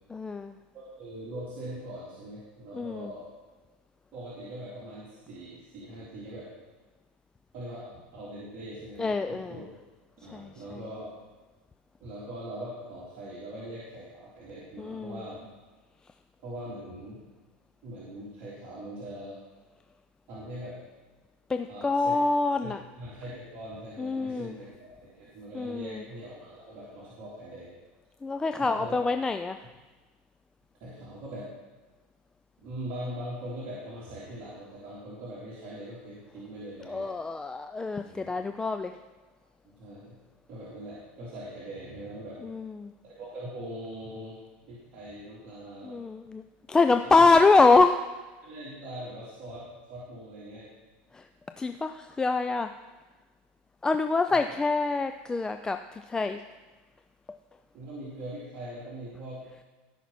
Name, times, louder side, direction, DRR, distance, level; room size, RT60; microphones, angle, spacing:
voice 1, 0.1-0.6 2.7-3.1 9.0-9.6 10.3-10.5 14.8-15.2 21.5-22.8 24.0-24.6 25.5-26.0 28.2-29.6 36.9-38.9 42.4-42.9 45.8-46.4 46.7-48.0 51.1-51.3 51.6-52.7 53.8-56.4, left 3 dB, 10° left, 8 dB, 0.3 m, -25 dB
voice 2, 0.7-3.3 4.1-6.5 7.5-9.6 10.2-11.1 12.0-15.4 16.4-17.2 17.8-19.4 20.3-20.8 21.7-22.2 22.6-22.7 23.0-24.7 25.0-27.7 28.6-29.0 30.8-31.5 32.6-37.1 38.0-38.4 39.6-40.2 40.5-42.4 43.0-44.4 44.7-46.0 46.9-47.4 48.4-50.7 54.3-54.4 57.7-59.4, right 1 dB, 45° right, -10 dB, 3.6 m, -41 dB
17.0 x 5.8 x 4.3 m, 1.3 s
supercardioid pair, 125°, 6 cm